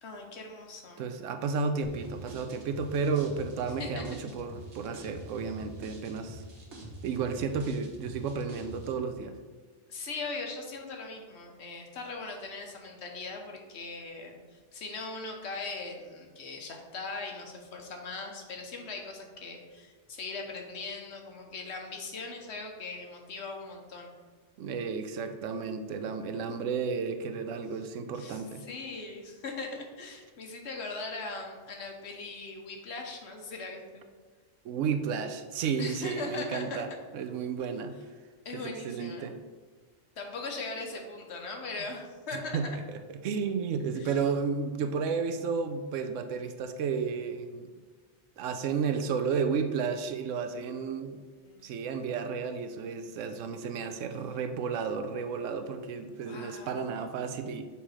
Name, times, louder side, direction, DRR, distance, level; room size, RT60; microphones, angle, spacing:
voice 1, 0.0-1.0 3.8-4.0 9.9-24.1 28.1-34.0 35.8-36.8 38.4-39.3 40.2-42.6 43.9-44.2 50.5-50.7 51.4-51.7 56.2-57.0, left 3 dB, 65° left, 2 dB, 1.1 m, -40 dB
voice 2, 1.0-6.4 7.0-9.4 24.6-28.6 34.6-36.9 37.1-38.0 38.5-39.4 42.3-47.7 48.4-51.2 51.6-57.7, right 5 dB, 90° right, 8 dB, 0.9 m, -32 dB
sound 1, 1.8-8.9, right 1 dB, 65° right, 1.5 m, -45 dB
6.9 x 2.9 x 4.9 m, 1.4 s
omnidirectional pair, 1.3 m